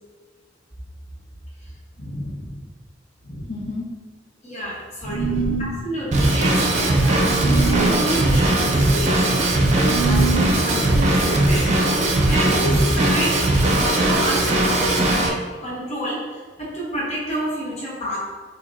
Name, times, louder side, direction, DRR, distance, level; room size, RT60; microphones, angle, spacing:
voice 1, 2.0-2.6 3.2-3.8 5.0-5.8 12.6-12.8, left 1 dB, 70° left, -5 dB, 1.2 m, -31 dB
voice 2, 4.4-5.3 5.8-11.8 12.3-18.3, right 1 dB, 35° left, -6 dB, 1.0 m, -29 dB
sound 1, 5.1-5.7 7.4-8.0 9.8-10.5, right 6 dB, 80° right, 0.5 m, -25 dB
Drum kit / Drum, 6.1-15.3, right 1 dB, 35° right, 0.6 m, -19 dB
6.4 x 2.7 x 2.7 m, 1.4 s
head